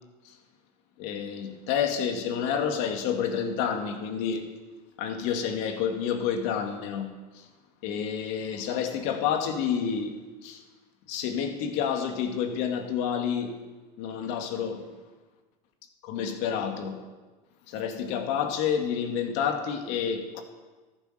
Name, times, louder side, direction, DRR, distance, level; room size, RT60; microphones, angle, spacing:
voice 1, 1.0-4.5 5.0-7.5 7.8-10.1 10.4-10.6 11.1-13.6 14.0-14.9 16.0-17.0 17.7-20.4, left 7 dB, 70° left, 5 dB, 2.1 m, -29 dB
14.5 x 9.8 x 6.5 m, 1.3 s
supercardioid pair, 120°, 20 cm